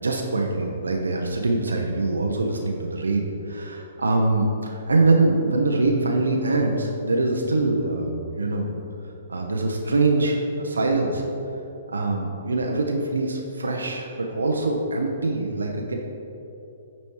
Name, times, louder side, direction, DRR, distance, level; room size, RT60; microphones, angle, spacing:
voice 1, 0.0-8.8 9.3-11.2 11.9-15.9, right 2 dB, 90° right, 1 dB, 0.8 m, -23 dB
8.6 x 4.2 x 4.7 m, 2.9 s
hypercardioid pair, 130°, 0 cm